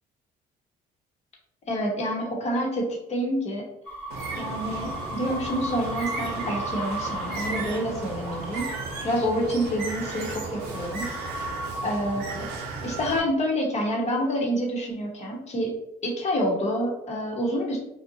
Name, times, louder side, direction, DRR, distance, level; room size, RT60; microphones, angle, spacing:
voice 1, 1.7-3.6 4.4-8.8 9.0-11.1 11.8-12.5 12.8-15.7 16.0-17.8, equal, 40° left, -1 dB, 0.8 m, -28 dB
sound 1, 3.9-12.7, right 1 dB, 10° left, 0.7 m, -37 dB
Bird, 4.1-13.2, right 3 dB, 70° right, 0.6 m, -35 dB
2.6 x 2.1 x 2.6 m, 0.82 s
cardioid pair, 110°, 17 cm